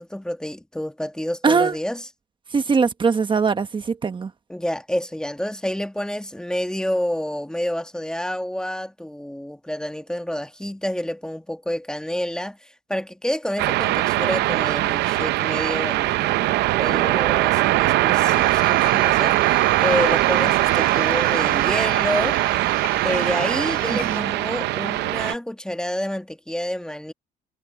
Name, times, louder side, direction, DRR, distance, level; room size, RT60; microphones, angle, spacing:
voice 1, 0.0-2.1 4.5-22.4 23.0-27.1, equal, 5° left, 1.5 m, -28 dB
voice 2, 1.4-1.7 2.5-4.3 23.9-24.3, right 5 dB, 30° right, 1.3 m, -21 dB
sound 1, 13.6-25.3, right 17 dB, 85° right, 0.6 m, -21 dB
sound 2, 18.3-24.2, left 12 dB, 60° left, 4.7 m, -41 dB
cardioid pair, 110°, 17 cm